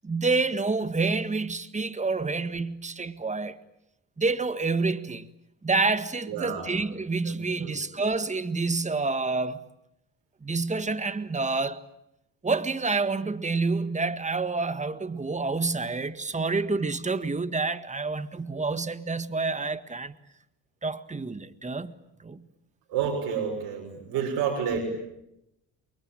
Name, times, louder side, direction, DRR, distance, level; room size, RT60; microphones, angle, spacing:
voice 1, 0.0-3.6 4.2-5.3 5.6-9.6 10.4-11.8 12.4-20.1 20.8-21.9 22.2-22.5, right 3 dB, 20° right, 1.7 m, -28 dB
voice 2, 6.3-6.7 7.2-7.4 7.6-7.8 22.9-24.9, right 7 dB, 75° right, 6.4 m, -29 dB
28.5 x 23.5 x 9.0 m
supercardioid pair, 75°, 39 cm